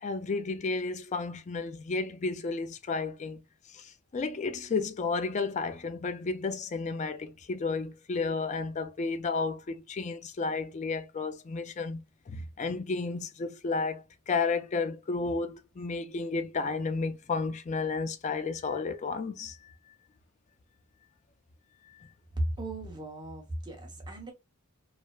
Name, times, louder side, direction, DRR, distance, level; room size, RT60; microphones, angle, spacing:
voice 1, 0.0-3.4 3.7-19.7 21.9-22.1, left 4 dB, 35° left, 0.3 m, -32 dB
voice 2, 22.3-24.3, right 1 dB, 20° right, 0.9 m, -35 dB
3.1 x 2.0 x 2.2 m
head